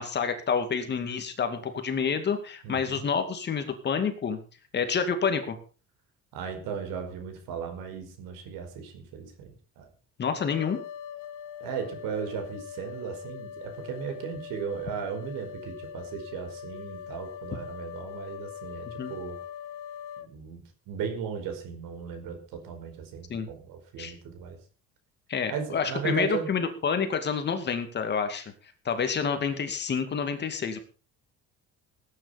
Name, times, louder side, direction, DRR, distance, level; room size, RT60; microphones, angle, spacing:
voice 1, 0.0-4.4 4.7-5.6 10.2-10.8 19.0-19.1 23.3-23.5 24.0-24.1 25.3-28.5 28.8-30.8, left 6 dB, 30° left, 7 dB, 2.4 m, -28 dB
voice 2, 2.6-3.0 6.3-9.9 11.6-19.4 20.2-24.6 25.5-26.5, right 7 dB, 85° right, 6 dB, 5.1 m, -36 dB
sound 1, 10.5-20.3, left 9 dB, 70° left, 1.5 m, -42 dB
17.5 x 9.9 x 5.2 m, 0.37 s
cardioid pair, 160°, 33 cm